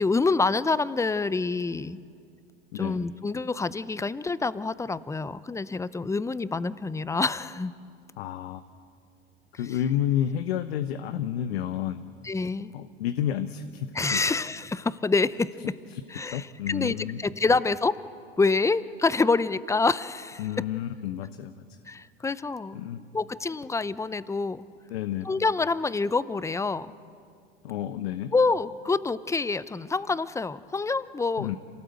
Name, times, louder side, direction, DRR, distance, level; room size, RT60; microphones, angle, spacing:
voice 1, 0.0-2.0 2.7-7.7 12.2-12.7 13.9-15.5 16.1-18.0 18.4-20.4 21.9-22.9 23.1-24.6 25.2-26.9 28.3-31.5, left 3 dB, 10° left, 17 dB, 0.6 m, -27 dB
voice 2, 2.7-3.1 8.2-8.6 9.6-12.1 12.7-14.2 15.9-17.2 20.4-21.6 22.2-22.3 22.7-23.0 24.9-25.3 27.6-28.3 31.4-31.6, left 10 dB, 75° left, 11 dB, 0.9 m, -30 dB
27.0 x 18.0 x 8.0 m, 2.3 s
hypercardioid pair, 85°, 31 cm